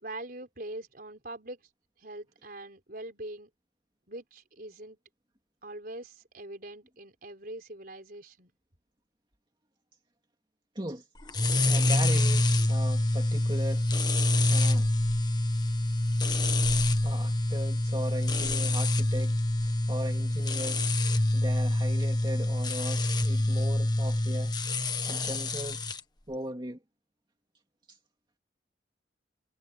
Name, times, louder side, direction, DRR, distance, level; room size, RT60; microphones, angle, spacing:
voice 1, 0.0-1.6 2.0-3.5 4.1-5.0 5.6-8.5, right 1 dB, 50° right, 4.6 m, -42 dB
voice 2, 10.7-11.1 11.7-14.1 14.5-14.9 17.0-24.6 25.1-25.8 26.3-26.8 27.9-28.0, right 1 dB, 25° right, 2.5 m, -38 dB
sound 1, 11.3-26.0, left 1 dB, 20° left, 1.5 m, -26 dB
head